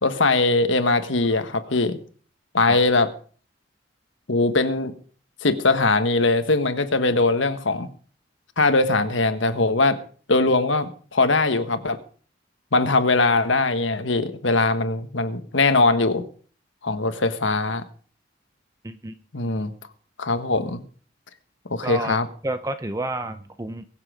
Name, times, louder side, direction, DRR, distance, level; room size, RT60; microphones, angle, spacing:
voice 1, 0.0-2.0 2.5-3.1 4.3-4.9 5.4-7.9 8.6-10.0 10.3-12.0 12.7-16.2 16.8-17.8 19.3-19.7 20.2-20.8 21.7-22.3, left 3 dB, 85° left, 9 dB, 1.5 m, -21 dB
voice 2, 18.8-19.2 21.8-22.2 22.4-23.8, right 2 dB, 20° right, 9 dB, 0.6 m, -30 dB
22.5 x 7.5 x 5.1 m, 0.43 s
head